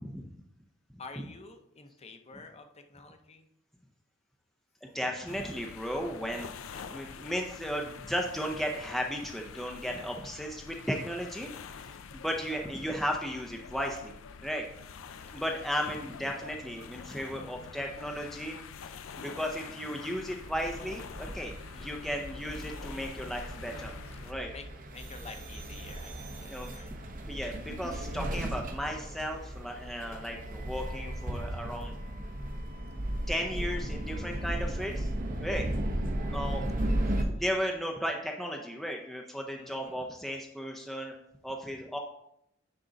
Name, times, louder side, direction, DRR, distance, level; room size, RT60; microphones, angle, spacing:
voice 1, 1.0-3.5 6.7-7.2 11.7-12.0 15.1-15.4 24.5-24.6 24.9-26.9 34.5-34.8 36.8-36.9 37.4-37.5 39.6-40.0, left 3 dB, 30° left, 6 dB, 0.7 m, -49 dB
voice 2, 4.8-6.5 6.9-11.5 11.9-14.1 14.4-14.7 15.3-18.6 19.2-23.9 24.2-24.5 26.5-26.7 27.2-32.0 33.3-35.1 35.4-35.7 36.3-36.6 37.3-41.1 41.4-42.0, equal, ahead, 1 dB, 0.5 m, -35 dB
sound 1, 5.3-24.3, left 6 dB, 85° left, 0.5 m, -46 dB
sound 2, 20.4-37.2, right 1 dB, 45° right, 0.9 m, -36 dB
9.8 x 3.8 x 3.9 m, 0.79 s
head